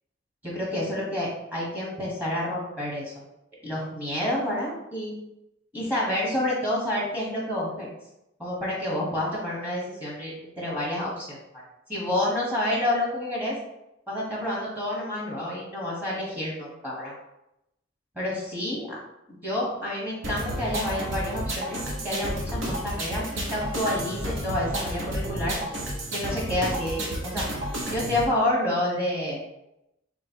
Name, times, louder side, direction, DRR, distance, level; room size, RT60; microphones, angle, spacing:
voice 1, 0.4-3.1 3.6-5.1 5.7-7.9 8.4-11.4 11.9-13.6 14.1-17.1 18.1-19.0 19.3-25.8 26.1-27.4 27.9-29.4, left 1 dB, 10° right, -6 dB, 1.3 m, -29 dB
sound 1, 20.2-28.2, equal, 70° right, 1.0 m, -31 dB
3.3 x 3.2 x 4.4 m, 0.86 s
head